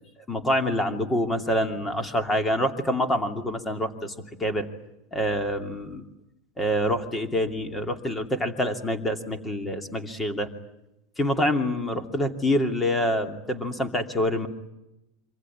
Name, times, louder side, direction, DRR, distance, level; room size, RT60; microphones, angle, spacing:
voice 1, 0.3-4.1 4.4-4.7 5.1-6.0 6.6-10.5 11.2-14.5, equal, 10° left, 6 dB, 2.6 m, -26 dB
26.5 x 25.5 x 8.6 m, 0.91 s
supercardioid pair, 160°, 0 cm